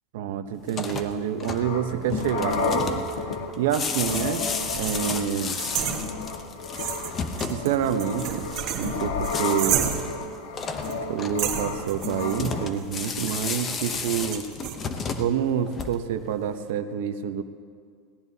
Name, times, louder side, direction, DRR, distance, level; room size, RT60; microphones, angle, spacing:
voice 1, 0.1-4.4 4.7-5.6 7.4-8.5 8.8-10.0 10.9-14.5 15.2-17.4, right 9 dB, 70° right, 8 dB, 0.8 m, -28 dB
sound 1, 0.6-16.3, left 5 dB, 20° left, 0.7 m, -34 dB
sound 2, 1.4-12.7, left 4 dB, 75° left, 1.4 m, -32 dB
sound 3, 4.1-6.5 6.7-10.3 10.8-11.0 11.4-14.7, right 9 dB, 40° right, 1.3 m, -32 dB
21.5 x 17.0 x 2.8 m, 2.1 s
supercardioid pair, 170°, 0 cm